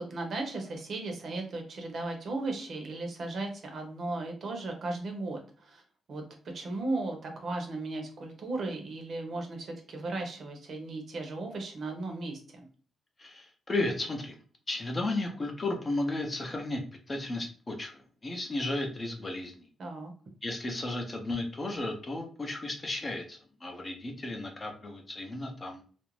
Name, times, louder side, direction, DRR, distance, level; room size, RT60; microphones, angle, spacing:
voice 1, 0.0-5.8 6.1-12.7 19.8-20.1, right 2 dB, 55° right, 3 dB, 0.7 m, -36 dB
voice 2, 13.2-14.4 14.7-19.7 20.4-25.8, left 2 dB, 25° left, 2 dB, 0.5 m, -34 dB
2.5 x 2.0 x 3.0 m, 0.42 s
cardioid pair, 130°, 0 cm